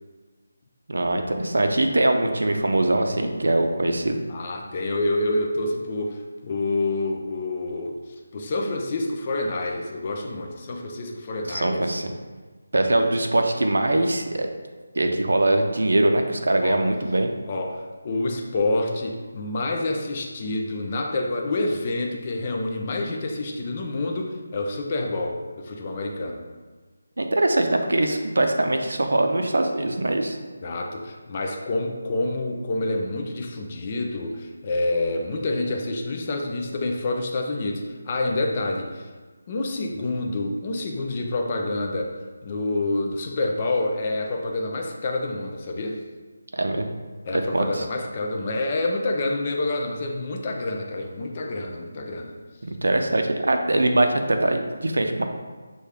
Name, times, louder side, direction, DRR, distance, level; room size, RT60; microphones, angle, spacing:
voice 1, 0.9-4.2 11.5-12.1 12.7-14.5 14.9-17.3 27.2-30.4 46.5-46.9 47.3-47.8 52.6-55.2, right 1 dB, 80° right, 4 dB, 0.6 m, -22 dB
voice 2, 4.3-8.0 8.3-11.8 12.8-13.1 16.6-16.9 17.5-26.4 30.6-39.1 39.5-42.2 42.4-46.0 47.2-52.4, left 2 dB, 20° left, 2 dB, 0.3 m, -27 dB
6.3 x 2.3 x 3.4 m, 1.3 s
figure-of-eight pair, 175°, 0 cm